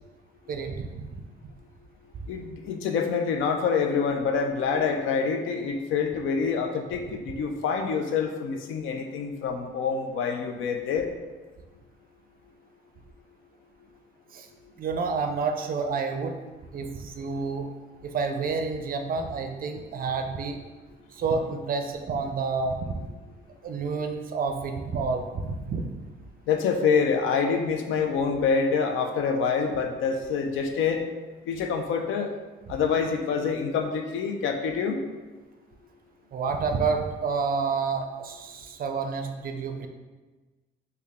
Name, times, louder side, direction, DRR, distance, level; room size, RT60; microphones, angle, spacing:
voice 1, 0.5-0.9 14.3-14.5 14.8-16.3 16.7-17.7 18.0-20.6 21.1-23.0 23.6-25.8 36.3-39.9, right 4 dB, 45° right, 5 dB, 0.4 m, -29 dB
voice 2, 2.3-11.1 26.5-31.1 31.5-32.3 32.7-35.0, left 5 dB, 80° left, 5 dB, 0.4 m, -26 dB
3.3 x 2.2 x 3.4 m, 1.3 s
cardioid pair, 90°, 20 cm